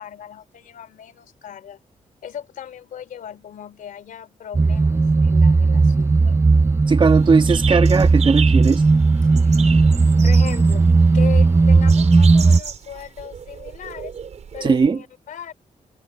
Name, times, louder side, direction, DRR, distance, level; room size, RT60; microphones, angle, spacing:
voice 1, 0.0-1.8 2.2-6.5 9.4-9.8 10.2-10.9 11.1-14.1 14.5-15.5, left 9 dB, 85° left, 3.1 m, -37 dB
sound 1, 4.5-12.6, right 3 dB, 20° right, 0.5 m, -15 dB
voice 2, 6.9-8.8 14.6-15.0, right 5 dB, 35° right, 1.5 m, -18 dB
sound 2, 7.0-14.9, right 7 dB, 55° right, 5.0 m, -33 dB
wide cardioid pair, 125°, 14 cm